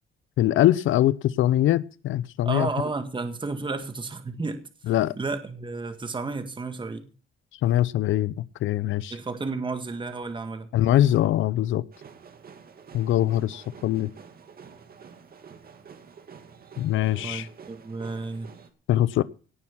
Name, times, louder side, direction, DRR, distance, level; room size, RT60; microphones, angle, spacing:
voice 1, 0.4-2.7 4.9-5.1 7.6-9.2 10.7-11.8 12.9-14.1 16.8-17.5 18.9-19.2, left 13 dB, 80° left, 0.7 m, -22 dB
voice 2, 2.5-4.6 5.2-7.1 9.1-10.7 17.2-18.5, right 3 dB, 25° right, 1.8 m, -32 dB
sound 1, 11.9-18.7, right 6 dB, 50° right, 2.5 m, -48 dB
18.5 x 6.2 x 7.2 m
cardioid pair, 90°, 20 cm